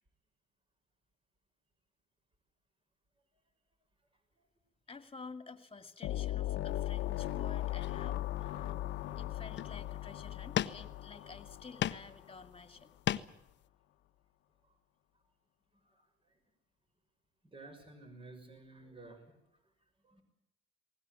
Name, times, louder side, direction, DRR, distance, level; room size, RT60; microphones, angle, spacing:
voice 1, 4.9-13.0, left 4 dB, 30° left, 9 dB, 2.4 m, -51 dB
sound 1, 6.0-12.5, left 14 dB, 85° left, 1.2 m, -38 dB
sound 2, 7.1-7.3 7.8-8.5 9.0-9.1 9.5-9.9 10.5-11.2 11.5-12.2 12.5-13.5, left 11 dB, 65° left, 0.9 m, -36 dB
voice 2, 15.7-16.4 17.4-19.4 20.0-20.2, right 2 dB, 25° right, 6 dB, 6.0 m, -54 dB
21.0 x 18.5 x 9.3 m, 0.81 s
cardioid pair, 90°, 20 cm